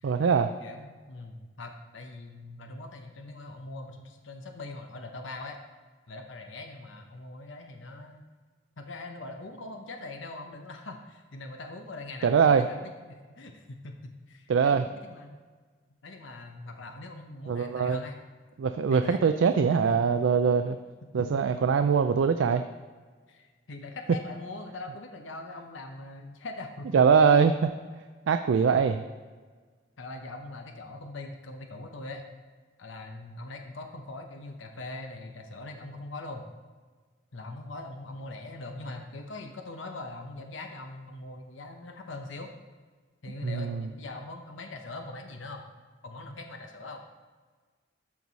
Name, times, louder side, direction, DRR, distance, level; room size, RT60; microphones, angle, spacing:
voice 1, 0.0-0.5 12.2-12.7 14.5-14.9 17.5-18.0 18.6-20.8 21.1-22.6 26.9-27.7 28.3-29.0 43.4-43.8, right 6 dB, 80° right, 8 dB, 0.4 m, -22 dB
voice 2, 0.6-5.6 6.1-8.2 8.8-14.0 14.3-15.4 16.0-18.2 18.9-19.2 19.9-20.0 21.1-21.4 23.3-26.9 28.7-29.0 30.0-32.2 32.8-36.5 37.3-42.5 43.2-45.7 46.0-47.0, left 2 dB, 80° left, 4 dB, 0.9 m, -42 dB
13.0 x 4.7 x 4.1 m, 1.5 s
head